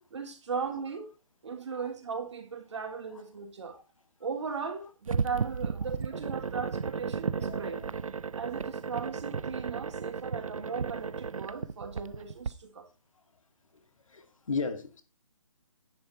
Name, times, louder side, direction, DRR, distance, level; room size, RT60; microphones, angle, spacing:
voice 1, 0.1-1.1 1.4-3.8 4.2-7.8 8.3-12.9, right 5 dB, 60° right, 3.6 m, -37 dB
sound 1, 5.1-12.5, right 5 dB, 85° right, 0.8 m, -34 dB
voice 2, 14.1-15.0, left 4 dB, 75° left, 2.3 m, -34 dB
10.5 x 9.3 x 4.3 m
hypercardioid pair, 165°, 17 cm